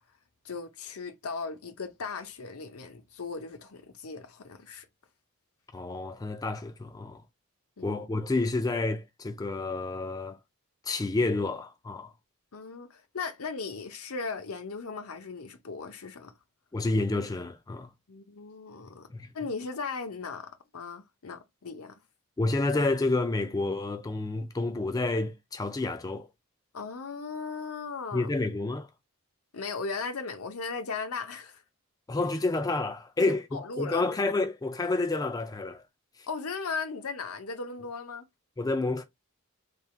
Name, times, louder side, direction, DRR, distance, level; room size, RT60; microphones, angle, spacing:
voice 1, 0.4-4.8 7.8-8.0 12.5-16.3 18.1-19.1 19.3-22.0 26.7-28.3 29.5-31.6 33.2-34.0 36.3-38.3, left 4 dB, 80° left, 0.8 m, -37 dB
voice 2, 5.7-7.2 7.8-10.4 10.8-12.1 16.7-17.9 19.1-19.3 22.4-26.3 28.1-28.9 32.1-35.8 38.6-39.0, left 2 dB, 15° left, 0.3 m, -29 dB
3.4 x 2.3 x 4.3 m
head